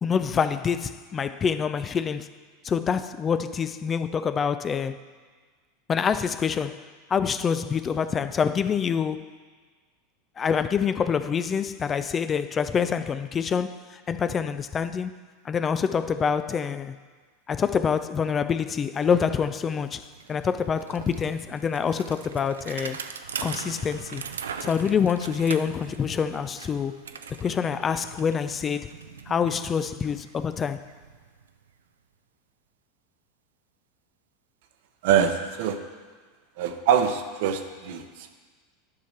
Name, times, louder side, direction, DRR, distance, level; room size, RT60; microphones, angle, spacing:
voice 1, 0.0-2.3 2.6-5.0 5.9-9.3 10.4-15.1 15.4-17.0 17.5-23.0 23.4-24.2 24.6-27.0 27.3-28.9 29.3-30.9, left 6 dB, 30° left, 0.4 m, -26 dB
Bicycle, 18.5-18.6 18.9-31.8, right 6 dB, 85° right, 0.4 m, -41 dB
voice 2, 35.0-35.8 36.6-38.4, right 8 dB, 65° right, 0.8 m, -24 dB
10.0 x 5.8 x 4.4 m
hypercardioid pair, 95°, 0 cm